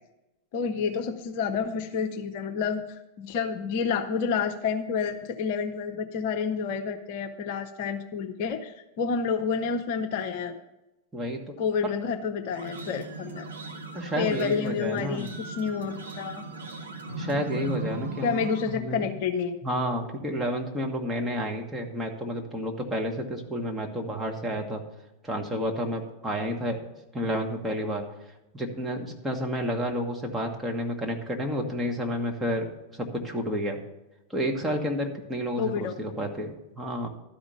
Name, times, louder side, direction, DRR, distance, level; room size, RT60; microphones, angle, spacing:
voice 1, 0.5-2.8 3.2-10.6 11.6-13.4 14.2-16.4 18.2-19.6 35.6-35.9, left 6 dB, 45° left, 5 dB, 0.7 m, -29 dB
voice 2, 11.1-11.5 11.8-12.0 13.9-15.3 17.2-18.4 18.7-19.1 19.6-24.8 25.2-26.9 27.1-28.0 28.5-33.8 34.3-37.1, equal, 10° right, 0 dB, 1.5 m, -30 dB
sound 1, 12.5-18.6, right 3 dB, 70° right, 1.0 m, -38 dB
12.0 x 5.1 x 7.1 m, 0.95 s
figure-of-eight pair, 90°, 0 cm